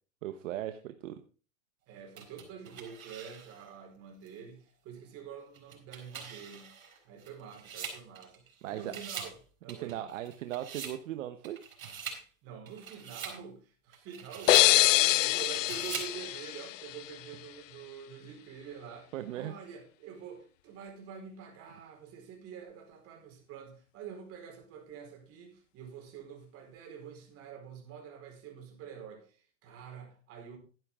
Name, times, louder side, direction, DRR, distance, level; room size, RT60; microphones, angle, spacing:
voice 1, 0.2-1.2 8.6-8.9 9.7-11.6 19.1-19.5, right 12 dB, 65° right, 1.1 m, -38 dB
voice 2, 1.9-6.7 7.0-9.4 9.6-10.1 12.4-30.6, right 7 dB, 35° right, 4.6 m, -47 dB
sound 1, 2.2-3.7 4.3-4.4 5.5-8.5 8.8-9.4 9.7-11.0 11.4-12.2 12.7-13.4 13.9-14.7 15.4-16.1, right 7 dB, 80° right, 5.3 m, -43 dB
sound 2, 14.5-17.2, left 17 dB, 65° left, 0.5 m, -25 dB
12.5 x 10.5 x 3.7 m
hypercardioid pair, 135°, 41 cm